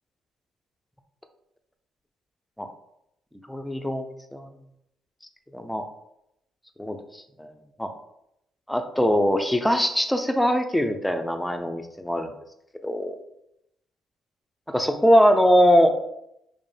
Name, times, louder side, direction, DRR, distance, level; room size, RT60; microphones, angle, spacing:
voice 1, 3.5-4.5 5.5-5.8 6.8-7.0 7.4-7.5 7.8-7.9 8.7-12.3 12.8-13.1 14.7-15.9, equal, 5° left, 6 dB, 0.5 m, -21 dB
5.1 x 2.0 x 3.2 m, 0.80 s
cardioid pair, 90°, 0 cm